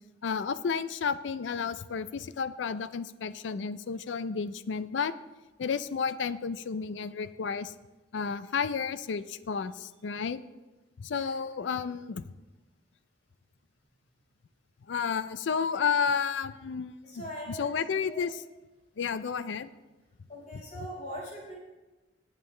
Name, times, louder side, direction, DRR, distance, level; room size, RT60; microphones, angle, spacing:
voice 1, 0.2-5.1 5.6-7.7 8.1-10.4 11.0-12.2 14.9-17.0 17.5-18.4 19.0-19.7 20.5-20.6, left 6 dB, 80° left, 14 dB, 0.4 m, -31 dB
voice 2, 17.0-17.7 18.1-18.2 20.3-21.5, equal, 40° left, -4 dB, 4.5 m, -41 dB
19.5 x 7.4 x 3.2 m, 1.1 s
head